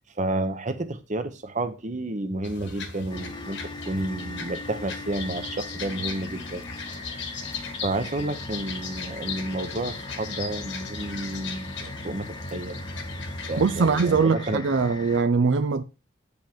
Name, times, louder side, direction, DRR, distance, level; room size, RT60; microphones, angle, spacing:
voice 1, 0.2-3.6 3.8-6.6 7.8-12.8 13.5-14.6, right 2 dB, 40° right, 0.9 m, -31 dB
sound 1, 2.4-14.2, left 4 dB, 75° left, 1.7 m, -37 dB
sound 2, 3.1-15.2, left 2 dB, 25° left, 0.9 m, -40 dB
voice 2, 13.6-15.8, right 5 dB, 75° right, 0.5 m, -22 dB
9.2 x 5.3 x 4.5 m
head